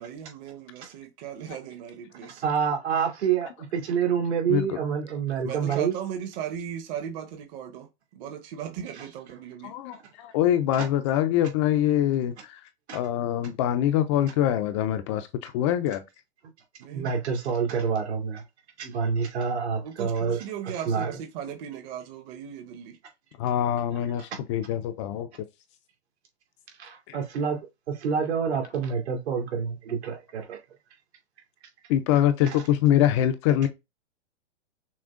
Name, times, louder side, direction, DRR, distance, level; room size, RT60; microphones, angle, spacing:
voice 1, 0.0-2.5 5.4-9.7 16.8-17.1 19.8-23.0, right 8 dB, 40° right, 1.0 m, -37 dB
voice 2, 2.2-6.0 9.0-9.1 10.7-10.9 12.9-13.0 16.9-18.4 18.8-20.4 20.8-21.2 24.2-24.3 26.8-27.6 27.9-30.6 32.5-32.6, right 6 dB, 75° right, 2.4 m, -27 dB
voice 3, 9.6-12.6 12.9-16.0 23.4-25.3 27.1-27.2 31.9-33.7, left 11 dB, 30° left, 0.4 m, -24 dB
6.1 x 2.2 x 3.6 m
hypercardioid pair, 140°, 34 cm